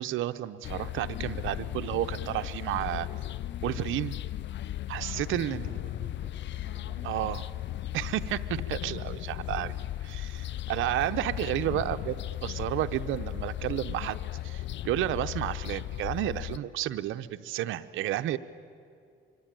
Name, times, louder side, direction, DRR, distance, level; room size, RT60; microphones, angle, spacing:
voice 1, 0.0-3.1 3.6-4.2 4.9-5.7 7.0-7.4 7.9-9.7 10.0-14.2 14.4-18.4, right 13 dB, 85° right, 10 dB, 0.8 m, -31 dB
sound 1, 0.6-16.6, left 13 dB, 65° left, 0.6 m, -36 dB
voice 2, 4.9-6.4 6.6-7.5, right 3 dB, 40° right, -2 dB, 3.8 m, -53 dB
24.5 x 24.5 x 9.1 m, 2.3 s
cardioid pair, 90°, 20 cm